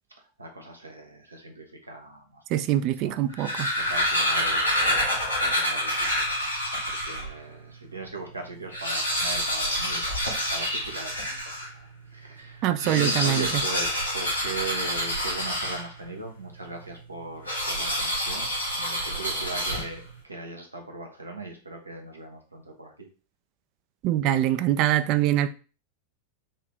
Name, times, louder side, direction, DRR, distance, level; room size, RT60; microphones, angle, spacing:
voice 1, 0.4-2.4 3.0-5.1 5.4-23.1, right 2 dB, 80° right, 0.9 m, -39 dB
voice 2, 2.5-3.7 12.6-13.5 24.0-25.5, right 12 dB, 40° right, 0.4 m, -24 dB
sound 1, 3.2-7.3 7.9-8.0 8.2-8.3 8.6-11.7 12.7-16.1 17.4-20.1, equal, 90° left, 1.8 m, -27 dB
5.5 x 2.8 x 3.2 m
figure-of-eight pair, 90°, 0 cm